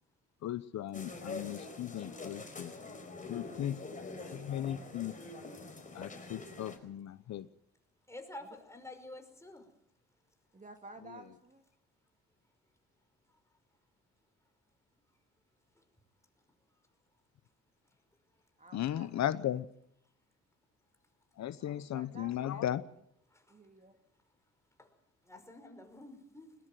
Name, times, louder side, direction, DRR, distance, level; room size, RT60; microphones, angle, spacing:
voice 1, 0.4-2.7 3.3-3.8 4.3-5.1 5.9-7.5 11.1-11.2 18.7-19.7 21.4-22.8, left 11 dB, 65° left, 14 dB, 0.9 m, -36 dB
sound 1, 0.9-6.8, left 3 dB, 25° left, 4.9 m, -45 dB
voice 2, 3.4-4.0 8.4-8.5 10.5-11.6 18.6-19.6 21.6-22.8 23.5-24.0, right 2 dB, 25° right, 6 dB, 2.6 m, -54 dB
voice 3, 8.1-9.7 23.3-23.4 24.8-24.9 25.3-26.6, left 2 dB, 10° left, 5 dB, 5.3 m, -49 dB
20.5 x 20.0 x 7.7 m, 0.71 s
cardioid pair, 90°, 30 cm